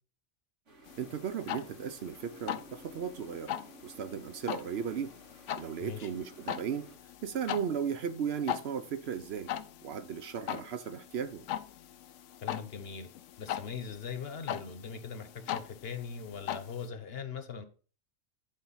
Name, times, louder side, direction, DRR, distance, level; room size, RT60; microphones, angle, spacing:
sound 1, 0.7-6.9, equal, 80° right, 2.4 m, -55 dB
sound 2, 0.9-16.9, left 11 dB, 80° left, 0.9 m, -41 dB
voice 1, 1.0-3.6 3.8-5.1 5.6-6.9 7.2-9.5 9.8-11.5, right 7 dB, 65° right, 0.9 m, -36 dB
voice 2, 12.4-13.1 13.4-17.6, left 6 dB, 60° left, 1.1 m, -40 dB
8.7 x 4.5 x 5.6 m
omnidirectional pair, 1.2 m